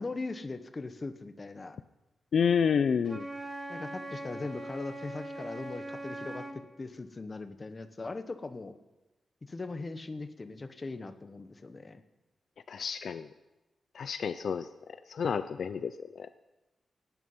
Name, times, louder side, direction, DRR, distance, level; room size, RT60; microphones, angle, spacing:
voice 1, 0.0-1.8 3.7-8.8 9.4-12.0, left 3 dB, 25° left, 9 dB, 0.8 m, -40 dB
voice 2, 2.3-3.3 12.7-13.3 13.9-14.7 15.1-16.3, left 6 dB, 60° left, 12 dB, 0.4 m, -29 dB
Wind instrument woodwind instrument, 3.0-6.6, right 1 dB, 15° right, 1.2 m, -41 dB
17.0 x 9.5 x 5.5 m, 1.0 s
wide cardioid pair, 150°, 0 cm